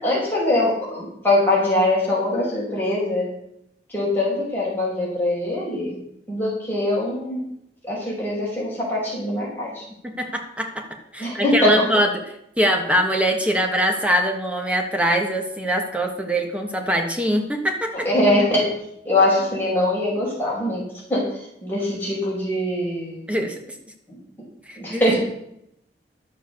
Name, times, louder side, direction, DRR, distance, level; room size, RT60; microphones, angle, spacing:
voice 1, 0.0-3.3 3.9-6.0 6.3-7.4 7.8-9.8 11.2-11.9 18.1-18.7 19.0-20.8 21.1-23.3 24.1-24.2 24.8-25.2, left 1 dB, 10° left, -5 dB, 5.3 m, -22 dB
voice 2, 10.0-10.8 11.1-12.1 12.6-18.1 23.3-23.6 24.7-25.2, equal, 5° right, 2 dB, 1.3 m, -22 dB
11.0 x 7.5 x 6.8 m, 0.77 s
head